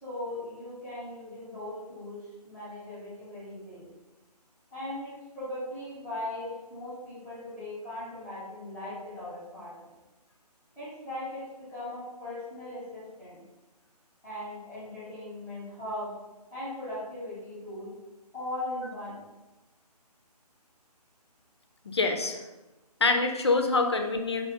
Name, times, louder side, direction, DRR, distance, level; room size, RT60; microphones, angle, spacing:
voice 1, 0.0-3.9 4.7-9.9 10.8-13.4 14.2-16.1 16.5-17.9 18.3-19.2, left 1 dB, ahead, -11 dB, 0.7 m, -39 dB
voice 2, 21.9-22.4 23.0-24.5, left 3 dB, 40° left, 4 dB, 0.4 m, -25 dB
4.1 x 2.8 x 3.1 m, 1.1 s
figure-of-eight pair, 150°, 21 cm